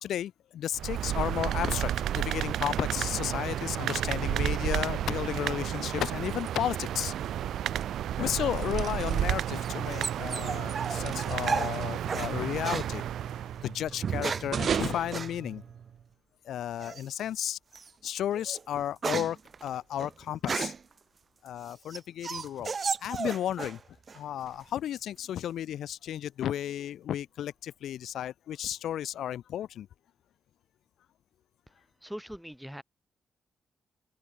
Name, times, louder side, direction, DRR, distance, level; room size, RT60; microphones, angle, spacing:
voice 1, 0.0-7.1 8.2-15.6 16.4-17.6 18.0-20.7 21.4-22.7 23.0-23.8 24.1-29.9, left 11 dB, 80° left, 0.6 m, -33 dB
sound 1, 0.7-13.7, right 11 dB, 85° right, 1.0 m, -32 dB
sound 2, 5.6-16.1, right 7 dB, 45° right, 2.2 m, -38 dB
sound 3, 9.0-12.3 12.6-12.9 13.9-14.6 15.1-15.3 16.8-17.2 17.7-17.9 18.3-20.9 21.5-23.8 24.1-24.7, right 5 dB, 30° right, 0.5 m, -34 dB
voice 2, 32.0-32.8, equal, ahead, 1.5 m, -41 dB
wide cardioid pair, 165°, 0 cm